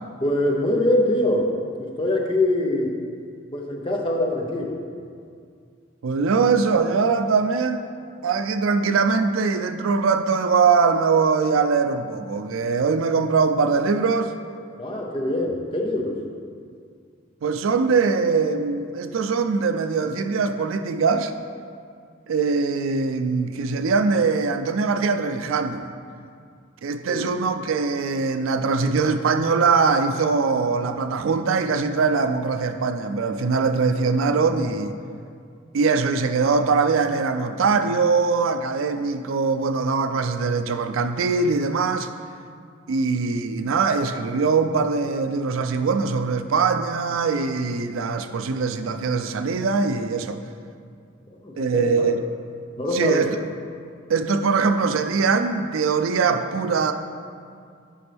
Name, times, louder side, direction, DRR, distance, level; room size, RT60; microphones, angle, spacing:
voice 1, 0.2-1.5 1.8-2.9 3.5-4.8 14.8-16.2 27.1-27.2 51.3-52.1 52.8-53.2, left 1 dB, 25° left, 0 dB, 0.7 m, -23 dB
voice 2, 6.0-7.9 8.2-14.3 17.4-21.3 22.3-25.9 26.8-34.9 35.7-42.1 42.9-50.4 51.6-52.2 52.9-53.3 54.1-56.9, right 4 dB, 80° right, 8 dB, 0.4 m, -22 dB
10.0 x 5.2 x 3.4 m, 2.3 s
head